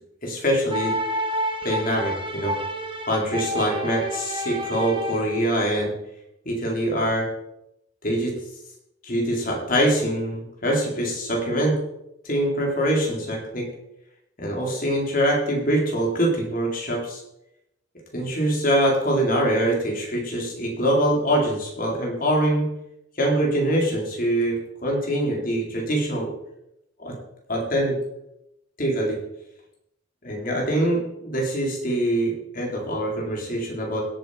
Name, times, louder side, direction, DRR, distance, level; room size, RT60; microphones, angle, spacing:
voice 1, 0.2-0.9 1.6-2.6 3.1-5.9 6.5-7.3 8.0-8.4 9.0-11.7 12.2-13.7 14.4-17.2 18.1-22.7 23.2-26.3 27.0-27.1 27.5-28.0 28.8-29.2 30.2-34.1, right 1 dB, 45° left, -1 dB, 4.0 m, -24 dB
sound 1, 0.7-5.5, equal, 25° right, 1.5 m, -29 dB
16.5 x 8.4 x 5.1 m, 0.84 s
head